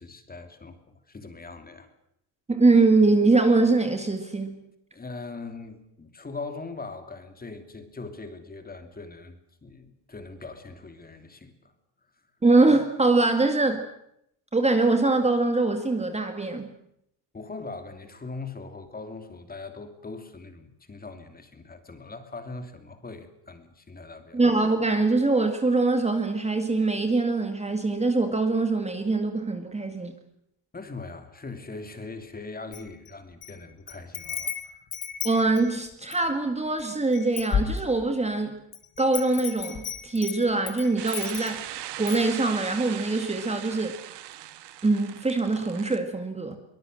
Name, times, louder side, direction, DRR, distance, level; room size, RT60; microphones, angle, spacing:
voice 1, 0.0-1.9 4.9-11.7 17.3-24.4 30.7-34.8, left 3 dB, 20° left, 2.8 m, -41 dB
voice 2, 2.5-4.6 12.4-13.9 14.5-16.7 24.3-30.2 35.2-38.6 39.0-41.7 42.0-44.1 44.8-46.6, right 3 dB, 15° right, 2.0 m, -23 dB
Wind chime, 32.7-33.5 33.9-36.3 36.8-36.9 37.1-38.2 38.7-41.7 42.1-42.3, left 7 dB, 40° left, 2.8 m, -33 dB
sound 1, 41.0-46.0, right 13 dB, 55° right, 1.7 m, -39 dB
23.5 x 20.5 x 7.8 m
cardioid pair, 130°, 49 cm